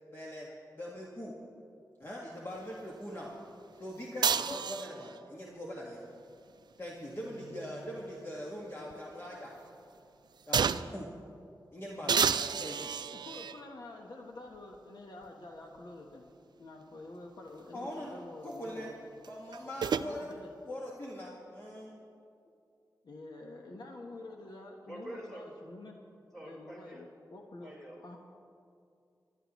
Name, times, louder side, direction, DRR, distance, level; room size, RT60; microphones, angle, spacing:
voice 1, 0.1-0.5 0.8-1.3 2.0-3.3 3.8-6.0 6.8-9.5 10.5-11.1 11.7-12.9 17.7-18.9 19.3-20.3 20.6-21.9, equal, 30° left, -4 dB, 1.8 m, -42 dB
sound 1, 4.2-5.2 6.9-8.5 8.9-9.0 10.5-11.0 12.1-13.6 14.5-14.6 19.2-20.1, right 6 dB, 75° right, 0.4 m, -31 dB
voice 2, 13.1-16.3 16.6-19.0 19.8-20.5 23.0-26.0 26.4-27.7 28.0-28.2, left 2 dB, 70° left, 1 dB, 1.2 m, -48 dB
voice 3, 24.8-25.5 26.3-27.0 27.6-28.1, right 1 dB, 5° left, -4 dB, 4.3 m, -46 dB
25.0 x 11.5 x 3.1 m, 2.4 s
wide cardioid pair, 85°, 7 cm